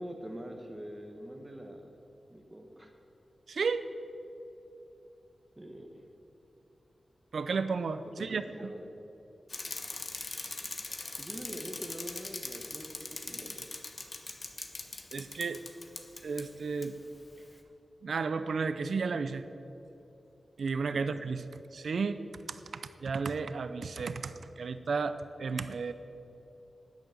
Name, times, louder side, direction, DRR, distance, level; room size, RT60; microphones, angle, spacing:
voice 1, 0.0-2.0 2.3-2.9 5.6-5.9 8.0-8.9 11.2-13.7 20.9-21.0, equal, 15° right, 2 dB, 1.1 m, -44 dB
voice 2, 3.5-3.8 7.3-8.7 15.1-15.6 16.2-16.9 18.0-19.4 20.6-21.4 21.7-22.2 22.5-25.9, right 4 dB, 75° right, 11 dB, 0.5 m, -33 dB
Bicycle, 9.5-16.4 16.8-16.9, left 3 dB, 40° left, 1.1 m, -41 dB
9.8 x 9.1 x 7.6 m, 3.0 s
wide cardioid pair, 110°, 0 cm